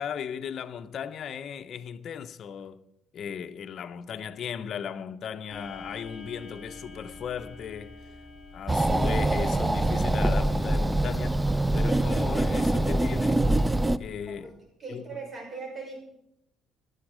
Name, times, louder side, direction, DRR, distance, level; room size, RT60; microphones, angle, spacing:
voice 1, 0.0-2.8 3.1-8.0 8.5-13.4 14.0-14.6 14.9-15.0, left 7 dB, 50° left, 0.8 m, -36 dB
Clock, 5.5-14.4, left 3 dB, 35° left, 4.1 m, -48 dB
sound 1, 8.7-14.0, right 1 dB, 10° right, 0.5 m, -24 dB
voice 2, 14.8-16.0, right 4 dB, 30° right, 6.0 m, -39 dB
18.0 x 12.5 x 5.0 m
cardioid pair, 125°, 0 cm